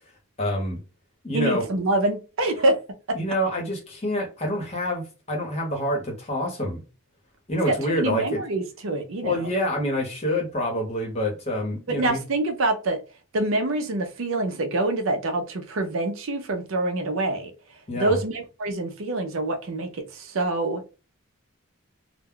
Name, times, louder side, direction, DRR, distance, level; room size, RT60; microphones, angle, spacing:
voice 1, 0.4-0.8 1.2-1.6 3.1-6.8 7.5-8.4 9.2-12.2 17.9-18.2, equal, 30° left, 0.9 m, -27 dB
voice 2, 1.3-2.8 7.7-9.5 11.9-13.0 13.3-17.5 18.0-20.8, right 2 dB, 65° right, 0.5 m, -26 dB
2.2 x 2.1 x 3.6 m
head